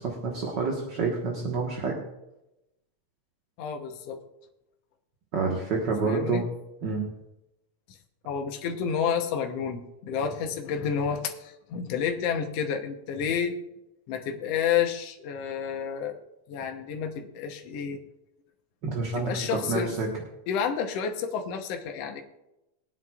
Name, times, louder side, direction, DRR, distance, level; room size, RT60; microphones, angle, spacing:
voice 1, 0.0-1.9 5.3-6.4 6.8-7.0 18.8-20.1, right 4 dB, 45° right, -1 dB, 1.7 m, -28 dB
voice 2, 3.6-4.2 6.0-6.5 7.9-8.0 8.3-13.6 14.1-16.2 16.5-18.0 19.2-20.0 20.5-22.2, left 7 dB, 65° left, 4 dB, 2.0 m, -30 dB
23.0 x 9.3 x 2.4 m, 0.93 s
omnidirectional pair, 3.3 m